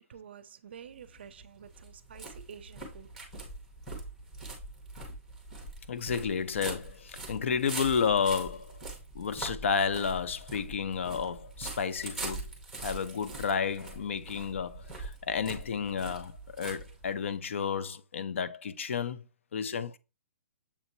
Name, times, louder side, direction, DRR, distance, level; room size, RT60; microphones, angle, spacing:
voice 1, 0.1-3.1, right 8 dB, 50° right, 0.4 m, -49 dB
sound 1, 0.9-17.4, right 2 dB, ahead, 0.8 m, -43 dB
voice 2, 5.9-8.8 9.1-12.5 12.8-19.2 19.5-20.0, left 6 dB, 65° left, 0.4 m, -31 dB
6.9 x 2.9 x 2.6 m
hypercardioid pair, 180°, 7 cm